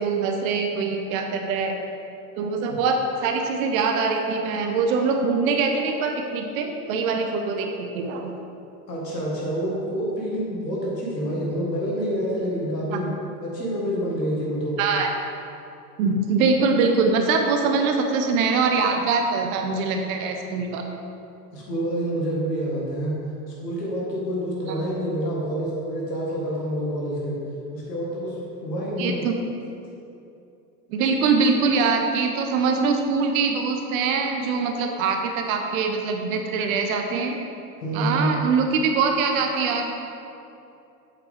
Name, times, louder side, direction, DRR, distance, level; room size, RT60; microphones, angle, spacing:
voice 1, 0.0-1.8 2.4-8.3 12.9-13.0 14.8-15.1 16.0-20.8 29.0-29.4 30.9-37.4 37.9-39.8, right 4 dB, 60° right, 4 dB, 1.0 m, -23 dB
voice 2, 8.9-13.1 13.4-14.8 21.5-23.2 23.6-27.4 27.7-29.2 37.8-38.3, equal, 80° left, -4 dB, 1.9 m, -27 dB
8.4 x 7.7 x 3.6 m, 2.7 s
hypercardioid pair, 80°, 48 cm